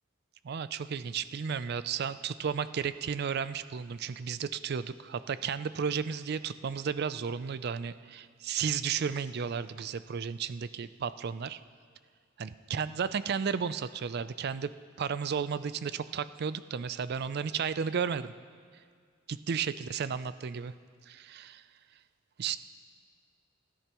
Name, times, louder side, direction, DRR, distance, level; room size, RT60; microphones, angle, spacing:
voice 1, 0.4-11.6 12.4-14.7 15.0-18.3 19.3-20.7 21.1-21.6 22.4-22.6, right 6 dB, 55° right, 14 dB, 0.4 m, -33 dB
29.0 x 10.0 x 3.0 m, 2.1 s
head